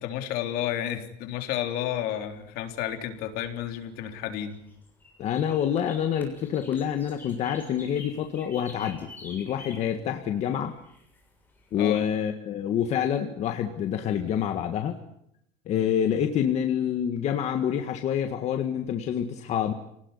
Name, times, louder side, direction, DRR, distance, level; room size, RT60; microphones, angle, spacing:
voice 1, 0.0-4.6 11.8-12.0, left 11 dB, 60° left, 6 dB, 3.7 m, -31 dB
sound 1, 2.3-12.0, left 2 dB, 10° left, 6.9 m, -49 dB
voice 2, 5.2-10.8 11.7-15.0 15.6-19.7, left 9 dB, 40° left, 6 dB, 1.8 m, -27 dB
29.0 x 19.0 x 9.9 m, 0.77 s
cardioid pair, 165°, 18 cm